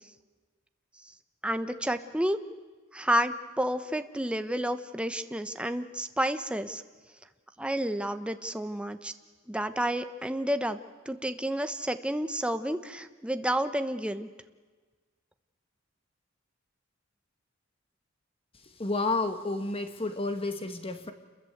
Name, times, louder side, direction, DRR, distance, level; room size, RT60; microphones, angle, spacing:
voice 1, 1.4-2.4 2.9-6.8 7.6-9.1 9.5-10.8 11.1-14.3, right 1 dB, 5° right, 9 dB, 1.1 m, -30 dB
voice 2, 18.8-21.1, left 2 dB, 30° left, 8 dB, 1.5 m, -30 dB
28.5 x 22.0 x 8.0 m, 1.4 s
head